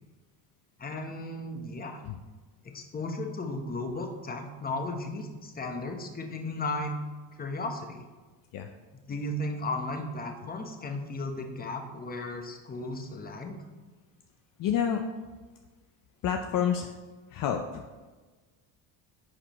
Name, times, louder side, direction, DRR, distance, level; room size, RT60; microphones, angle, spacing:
voice 1, 0.8-2.0 2.6-6.9 7.3-8.0 9.1-13.6, left 2 dB, 20° left, 4 dB, 1.0 m, -35 dB
voice 2, 14.6-15.0 16.2-16.9 17.3-17.8, left 8 dB, 50° left, 5 dB, 0.6 m, -28 dB
10.0 x 5.0 x 3.1 m, 1.3 s
cardioid pair, 110°, 43 cm